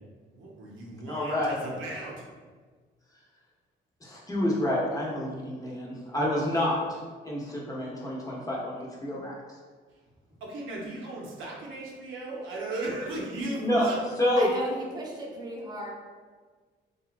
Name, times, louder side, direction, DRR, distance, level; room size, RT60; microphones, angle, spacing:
voice 1, 0.3-2.2 10.4-14.0, right 2 dB, 80° right, -3 dB, 0.7 m, -36 dB
voice 2, 1.1-1.5 4.0-7.0 7.2-9.4 13.6-13.9 14.2-14.5, left 1 dB, 15° left, -5 dB, 0.7 m, -28 dB
voice 3, 14.4-15.9, right 1 dB, 20° right, -1 dB, 0.5 m, -35 dB
2.9 x 2.3 x 2.4 m, 1.5 s
cardioid pair, 90°, 20 cm